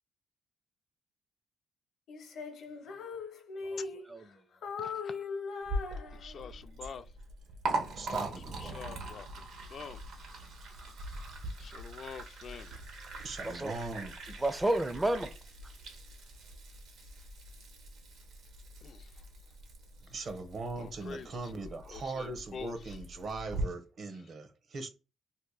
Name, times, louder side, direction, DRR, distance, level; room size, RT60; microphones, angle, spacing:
Female singing, 2.1-4.3 4.6-6.7, left 4 dB, 75° left, 0.8 m, -40 dB
voice 1, 3.6-4.5 13.4-15.4 15.6-15.7, right 1 dB, 15° right, 0.4 m, -33 dB
voice 2, 4.8-5.2 6.1-7.0 8.6-9.3 9.6-10.0 11.6-12.8 18.8-19.1 20.8-21.3 21.9-22.7, left 6 dB, 55° left, 0.3 m, -46 dB
Liquid, 5.6-23.6, right 2 dB, 80° right, 1.1 m, -42 dB
voice 3, 7.9-9.0 13.2-14.1 20.1-24.9, right 3 dB, 55° right, 0.7 m, -40 dB
2.8 x 2.5 x 3.7 m
cardioid pair, 90°, 0 cm